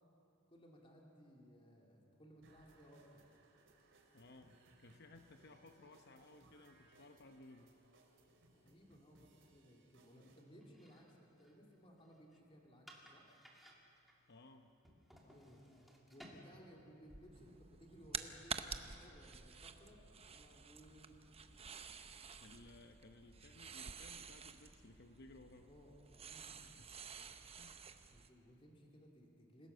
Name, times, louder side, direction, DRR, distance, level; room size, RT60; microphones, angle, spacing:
voice 1, 0.5-3.2 8.5-13.2 15.2-15.8 16.1-21.2 25.6-26.6 28.1-29.7, equal, 25° left, -1 dB, 2.6 m, -61 dB
sound 1, 2.4-10.4, right 2 dB, 60° right, 3.2 m, -69 dB
voice 2, 4.1-7.8 14.3-14.7 22.4-25.7 26.8-27.0 27.6-27.8, left 2 dB, 50° left, 6 dB, 0.9 m, -60 dB
sound 2, 10.6-18.0, equal, ahead, 2.4 m, -63 dB
sound 3, 17.3-28.3, right 6 dB, 30° right, 0.8 m, -50 dB
27.0 x 17.0 x 6.8 m, 3.0 s
head